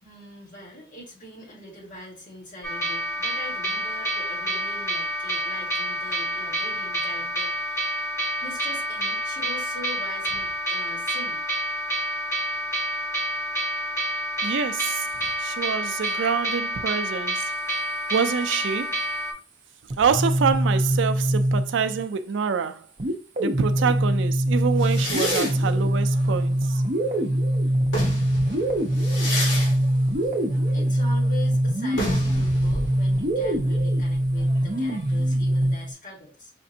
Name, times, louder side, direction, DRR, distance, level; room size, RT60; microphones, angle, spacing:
voice 1, 0.0-8.1 8.4-11.4 30.7-36.5, left 1 dB, 45° left, 1.8 m, -42 dB
sound 1, 2.6-19.3, equal, 15° left, 1.2 m, -28 dB
voice 2, 14.4-15.1 15.4-17.5 18.1-19.0 20.0-22.9 23.4-26.8, right 6 dB, 65° right, 0.4 m, -26 dB
sound 2, 19.9-22.0 23.0-35.9, right 1 dB, 40° right, 0.7 m, -23 dB
sound 3, 24.8-27.3 27.7-35.2, left 1 dB, 75° left, 1.7 m, -32 dB
5.1 x 2.5 x 2.7 m
head